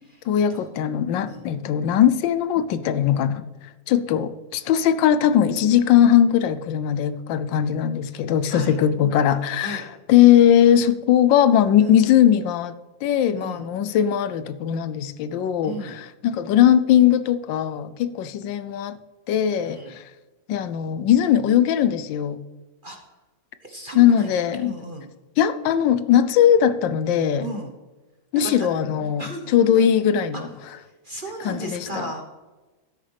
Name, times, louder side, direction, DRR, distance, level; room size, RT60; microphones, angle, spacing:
voice 1, 0.3-3.4 3.9-12.7 13.0-19.0 19.3-20.0 20.5-22.4 23.9-24.8 25.4-27.5 28.3-30.5 31.4-32.1, left 10 dB, 80° left, 14 dB, 1.3 m, -19 dB
voice 2, 15.6-16.0 19.5-19.9 22.8-23.0 23.6-24.3 24.6-25.1 27.4-27.7 28.4-28.7 29.2-29.4 29.7-29.9 31.0-32.2, right 1 dB, 35° right, 2 dB, 0.9 m, -35 dB
12.5 x 10.0 x 3.4 m, 1.2 s
omnidirectional pair, 2.0 m